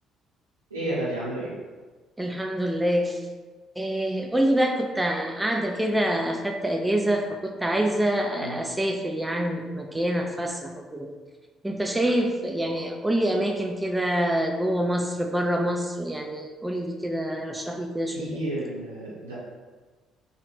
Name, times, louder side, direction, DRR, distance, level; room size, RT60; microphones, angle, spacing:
voice 1, 0.7-1.5 8.4-8.6 18.1-19.3, right 1 dB, 85° right, -10 dB, 0.9 m, -31 dB
voice 2, 2.2-3.2 3.8-11.1 11.6-18.5, right 1 dB, 10° right, 2 dB, 0.3 m, -26 dB
2.4 x 2.3 x 3.1 m, 1.3 s
figure-of-eight pair, 45°, 0 cm